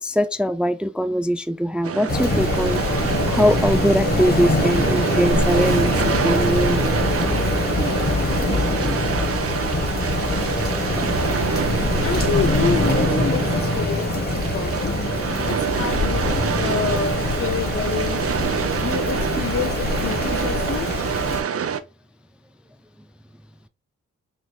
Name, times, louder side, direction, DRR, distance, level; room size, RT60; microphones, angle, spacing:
voice 1, 0.0-7.1, equal, 5° right, 0.3 m, -22 dB
sound 1, 1.8-21.8, right 8 dB, 50° right, 0.6 m, -26 dB
Rain, 2.1-21.4, left 2 dB, 30° left, 1.6 m, -23 dB
voice 2, 12.0-14.9 15.5-17.1 17.4-18.3 18.8-20.9, left 7 dB, 50° left, 0.6 m, -28 dB
6.1 x 3.2 x 2.3 m
cardioid pair, 75°, 30 cm